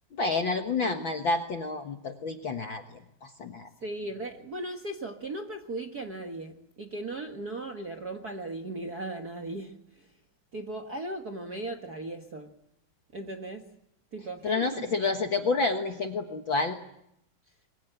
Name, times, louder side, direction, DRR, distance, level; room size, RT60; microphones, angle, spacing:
voice 1, 0.1-2.8 3.2-3.7 14.4-16.8, left 3 dB, 55° left, 5 dB, 1.4 m, -29 dB
voice 2, 3.8-9.7 10.5-12.5 13.1-13.7 14.1-15.0, right 2 dB, 45° right, 5 dB, 1.2 m, -37 dB
25.5 x 24.0 x 8.1 m, 0.77 s
omnidirectional pair, 4.1 m